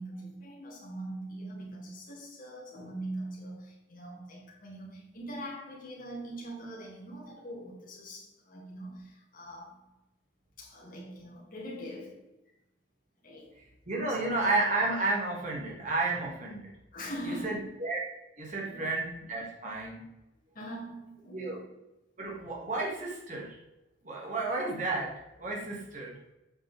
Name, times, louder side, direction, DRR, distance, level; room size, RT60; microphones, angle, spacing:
voice 1, 0.0-9.8 10.6-12.3 13.2-13.5 14.1-14.4 16.9-17.8 18.6-18.9 20.5-21.7, right 1 dB, 45° left, 2.7 m, -42 dB
voice 2, 13.6-16.7 17.3-18.0 18.4-20.0 21.3-21.6 22.2-23.6 24.0-26.2, right 2 dB, 40° right, 2.2 m, -32 dB
8.4 x 5.8 x 3.5 m
head